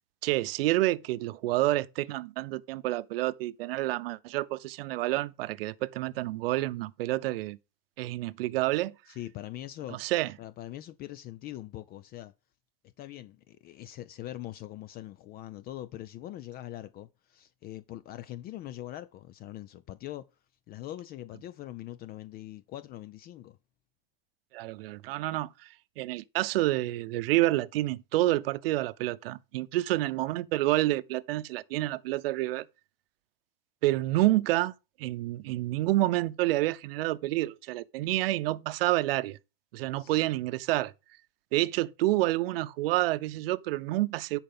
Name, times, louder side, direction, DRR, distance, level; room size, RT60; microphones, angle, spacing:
voice 1, 0.2-7.6 8.0-8.9 10.0-10.3 24.5-25.5 26.0-32.6 33.8-34.7 35.0-39.4 39.7-40.9 41.5-44.4, right 17 dB, 75° right, 0.7 m, -28 dB
voice 2, 9.1-10.0 10.4-12.3 13.0-20.3 20.7-23.6 40.0-40.2, left 14 dB, 30° left, 0.5 m, -42 dB
10.5 x 4.5 x 5.4 m
supercardioid pair, 130°, 29 cm